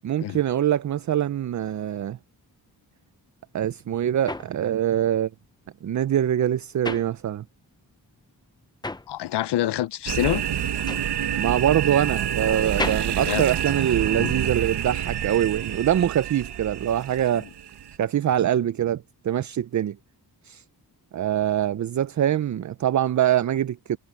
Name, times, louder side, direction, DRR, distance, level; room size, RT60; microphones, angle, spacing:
voice 1, 0.0-2.2 3.5-5.3 5.8-7.4 11.4-17.5 18.0-20.0 20.4-20.6 21.1-24.0, right 10 dB, 45° right, 0.5 m, -24 dB
sound 1, 3.5-7.8 8.1-14.3, left 2 dB, 10° left, 0.7 m, -37 dB
voice 2, 9.1-10.5 13.2-13.5 14.1-14.3, left 13 dB, 80° left, 0.7 m, -26 dB
sound 2, 10.1-18.0, right 9 dB, 75° right, 1.2 m, -28 dB
wide cardioid pair, 125°, 40 cm